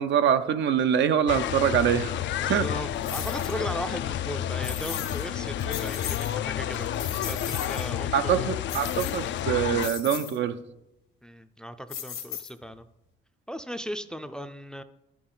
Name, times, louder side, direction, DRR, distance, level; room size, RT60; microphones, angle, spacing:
voice 1, 0.0-2.1 2.5-2.7 8.1-10.6, right 8 dB, 65° right, 10 dB, 0.6 m, -24 dB
sound 1, 1.3-9.9, left 11 dB, 65° left, 0.4 m, -30 dB
voice 2, 2.4-8.5 11.2-12.9 13.5-14.8, equal, 5° left, 10 dB, 0.4 m, -37 dB
sound 2, 3.0-3.6 4.6-5.3 5.6-6.3 6.7-7.9 8.7-9.4 9.8-10.4 11.9-12.8, left 8 dB, 85° left, 1.4 m, -37 dB
11.0 x 6.1 x 3.9 m, 0.89 s
cardioid pair, 90°, 20 cm